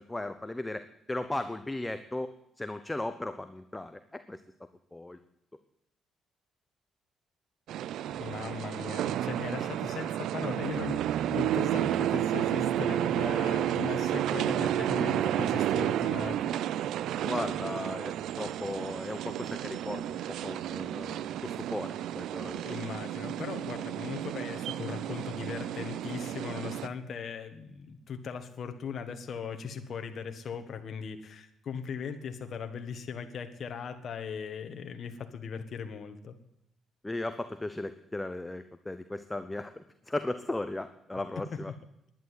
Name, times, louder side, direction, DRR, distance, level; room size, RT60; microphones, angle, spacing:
voice 1, 0.0-4.4 4.9-5.2 17.2-22.6 37.0-41.7, left 2 dB, 15° left, 10 dB, 0.9 m, -36 dB
sound 1, 7.7-26.9, right 11 dB, 80° right, 0.5 m, -31 dB
voice 2, 8.2-11.0 11.3-16.8 22.6-36.4, left 6 dB, 55° left, 7 dB, 1.6 m, -38 dB
11.0 x 10.5 x 9.4 m, 0.80 s
cardioid pair, 90°, 0 cm